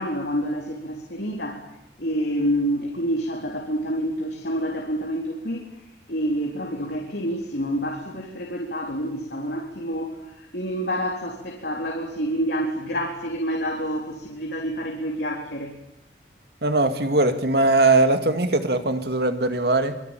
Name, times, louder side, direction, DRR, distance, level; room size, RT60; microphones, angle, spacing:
voice 1, 0.0-1.7 2.0-5.7 6.1-15.8, equal, 65° left, 1 dB, 3.9 m, -28 dB
voice 2, 16.6-19.9, right 2 dB, 60° right, 8 dB, 2.2 m, -20 dB
25.0 x 24.0 x 9.1 m, 0.86 s
head